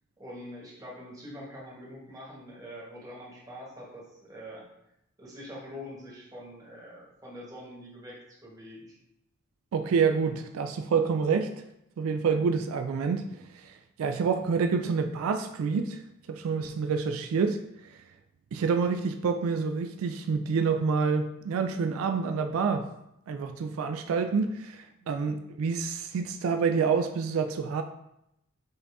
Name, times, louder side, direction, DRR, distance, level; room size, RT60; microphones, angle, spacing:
voice 1, 0.2-4.6 5.2-9.0 24.9-25.1, equal, 15° right, -5 dB, 1.2 m, -44 dB
voice 2, 9.7-11.5 12.0-16.0 16.3-17.6 17.9-18.0 18.5-22.9 23.3-27.8, right 5 dB, 80° right, 8 dB, 0.3 m, -28 dB
5.5 x 2.6 x 3.4 m, 0.83 s
head